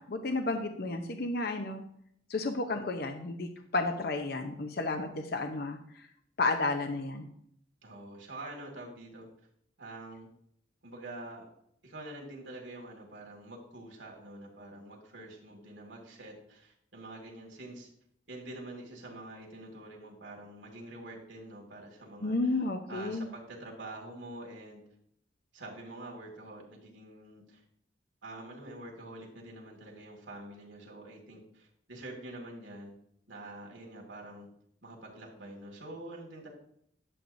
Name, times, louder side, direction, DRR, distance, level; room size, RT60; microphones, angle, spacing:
voice 1, 0.1-1.8 2.3-5.8 6.4-7.3 22.2-23.3, left 2 dB, 55° left, 6 dB, 0.7 m, -32 dB
voice 2, 7.8-9.3 9.8-10.3 10.8-11.5 11.8-17.9 18.3-22.3 22.9-24.8 25.5-27.6 28.2-32.9 33.3-34.5 34.8-36.5, right 1 dB, 85° right, -1 dB, 2.2 m, -46 dB
11.0 x 7.8 x 2.7 m, 0.69 s
head